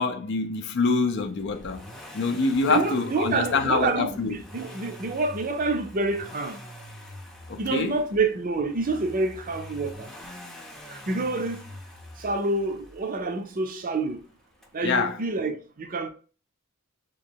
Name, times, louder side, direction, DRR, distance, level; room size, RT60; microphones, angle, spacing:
voice 1, 0.0-1.8 2.1-4.4 7.5-8.0 14.8-15.2, left 4 dB, 55° left, 0.4 m, -25 dB
Accelerating revving vroom, 1.4-13.3 14.6-14.7, left 1 dB, ahead, 0.6 m, -44 dB
voice 2, 2.7-6.6 7.6-10.1 10.9-11.6 12.2-14.2 14.7-16.1, right 3 dB, 40° right, 0.6 m, -28 dB
3.1 x 3.0 x 4.4 m
head